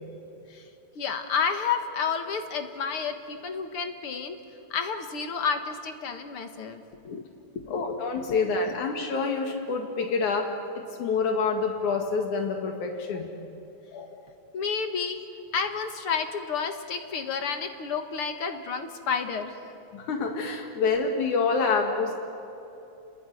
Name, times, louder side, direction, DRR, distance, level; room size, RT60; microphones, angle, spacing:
voice 1, 1.0-4.4 4.7-7.2 7.6-7.8 8.7-8.8 14.5-15.2 15.5-19.7, left 6 dB, 55° left, 6 dB, 2.2 m, -30 dB
voice 2, 7.7-10.5 10.8-13.3 13.9-14.2 19.9-22.2, left 4 dB, 85° left, 3 dB, 3.5 m, -27 dB
30.0 x 21.5 x 9.4 m, 2.9 s
omnidirectional pair, 3.4 m